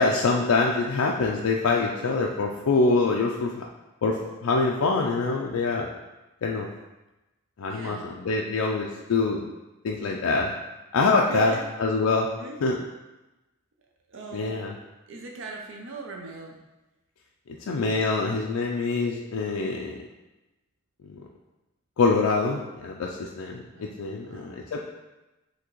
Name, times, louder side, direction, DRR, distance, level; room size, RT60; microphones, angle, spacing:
voice 1, 0.0-3.6 4.0-5.9 6.4-6.7 7.6-9.4 9.8-10.5 10.9-11.5 11.8-12.3 12.6-12.8 14.3-14.7 17.7-20.0 22.0-23.6 24.0-24.8, left 3 dB, 80° left, -1 dB, 0.4 m, -24 dB
voice 2, 7.7-8.2 11.3-11.6 12.3-12.6 14.1-14.6 15.1-16.6 23.7-24.6, right 3 dB, 60° right, 1 dB, 0.5 m, -37 dB
5.9 x 2.8 x 3.0 m, 1.0 s
head